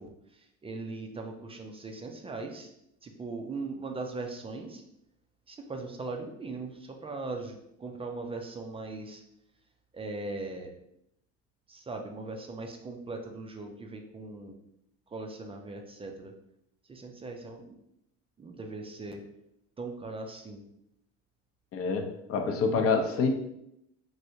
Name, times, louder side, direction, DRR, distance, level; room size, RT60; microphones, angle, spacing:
voice 1, 0.0-2.7 3.0-4.8 5.5-9.2 9.9-10.7 11.7-14.6 15.1-16.3 16.8-17.8 18.4-19.2 19.8-20.6, right 3 dB, 15° right, 3 dB, 0.4 m, -39 dB
voice 2, 21.7-23.3, left 4 dB, 40° left, 5 dB, 0.6 m, -27 dB
3.2 x 2.6 x 2.7 m, 0.79 s
hypercardioid pair, 70°, 36 cm